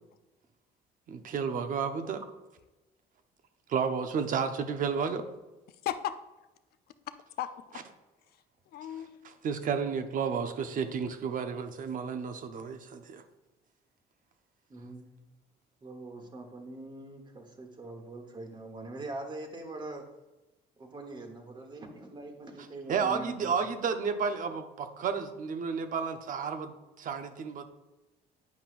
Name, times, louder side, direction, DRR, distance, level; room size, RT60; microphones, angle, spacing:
voice 1, 1.1-2.2 3.7-5.2 9.4-13.2 22.9-27.7, right 6 dB, 55° right, 8 dB, 0.7 m, -32 dB
voice 2, 5.7-6.2 6.9-7.8 8.3-9.3, left 11 dB, 70° left, 11 dB, 0.5 m, -38 dB
voice 3, 14.7-15.3 15.8-20.0 20.8-23.5, right 2 dB, 25° right, 4 dB, 1.1 m, -43 dB
9.3 x 5.3 x 2.5 m, 1.1 s
cardioid pair, 110°, 17 cm